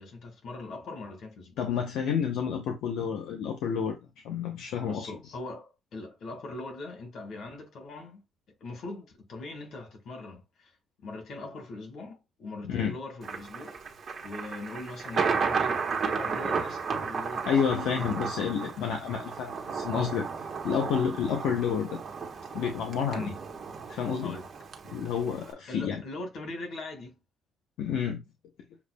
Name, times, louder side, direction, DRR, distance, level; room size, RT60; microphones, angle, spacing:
voice 1, 0.0-1.7 4.8-8.2 8.6-10.7 11.0-13.8 14.2-18.8 23.1-23.4 24.2-24.5 25.7-27.2, left 2 dB, 70° left, 1.6 m, -41 dB
voice 2, 1.6-4.0 4.2-5.1 12.6-12.9 17.4-20.3 20.6-22.0 22.5-23.2 23.9-24.4 24.9-26.0 27.8-28.2, left 7 dB, 90° left, 0.8 m, -29 dB
Thunder, 13.2-25.5, right 5 dB, 50° right, 1.1 m, -33 dB
7.0 x 2.4 x 2.3 m
cardioid pair, 90°, 0 cm